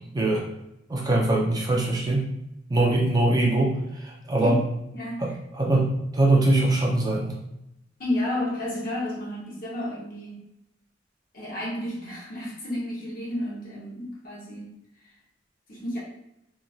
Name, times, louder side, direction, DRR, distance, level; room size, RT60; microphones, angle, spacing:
voice 1, 0.1-0.4 0.9-2.2 2.7-4.6 5.2-7.4, right 2 dB, 20° right, -3 dB, 0.4 m, -22 dB
voice 2, 4.9-5.4 8.0-10.4 11.3-14.7 15.7-16.0, left 1 dB, 50° left, -6 dB, 1.0 m, -31 dB
2.9 x 2.4 x 2.4 m, 0.83 s
head